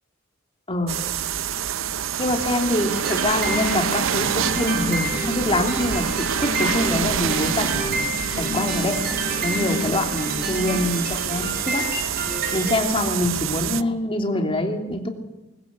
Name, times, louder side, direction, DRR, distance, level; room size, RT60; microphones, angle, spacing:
voice 1, 0.7-1.1 2.2-9.0 9.4-11.9 12.5-15.1, left 1 dB, 25° left, 3 dB, 2.9 m, -25 dB
sound 1, 0.9-13.8, right 9 dB, 80° right, 0.7 m, -27 dB
sound 2, 2.8-12.8, equal, 50° right, 5.4 m, -30 dB
sound 3, 3.9-12.7, equal, ahead, 6.1 m, -46 dB
20.5 x 19.5 x 8.3 m, 1.0 s
head